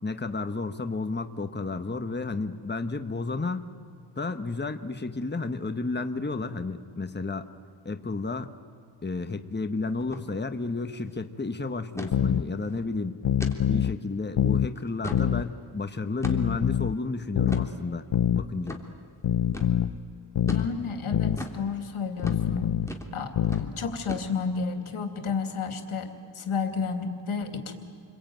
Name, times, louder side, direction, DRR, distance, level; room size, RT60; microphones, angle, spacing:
voice 1, 0.0-3.7 4.2-7.5 7.8-8.5 9.0-13.2 13.7-18.8, left 3 dB, 20° left, 8 dB, 1.4 m, -32 dB
sound 1, 10.0-10.2 10.5-10.6 11.0-11.3 12.0-12.2 12.7-12.8 13.4-13.6 14.1-14.2 14.8-15.3 16.2-16.6 17.5-17.7 18.7-18.8 19.5-19.7 20.5-20.7 21.4-21.6 22.2-22.4 22.9-23.1 23.4-23.7 24.1-24.5, left 1 dB, 5° left, 3.3 m, -37 dB
sound 2, 12.1-12.4 13.2-14.0 14.4-14.7 15.1-15.5 16.2-17.0 17.4-17.7 18.1-18.5 19.2-19.9 20.4-20.7 21.1-21.4 22.2-22.9 23.4-23.7, left 10 dB, 65° left, 0.8 m, -25 dB
voice 2, 20.5-22.7 23.1-27.7, left 5 dB, 85° left, 6 dB, 2.4 m, -31 dB
29.0 x 22.0 x 9.3 m, 2.2 s
cardioid pair, 55°, 48 cm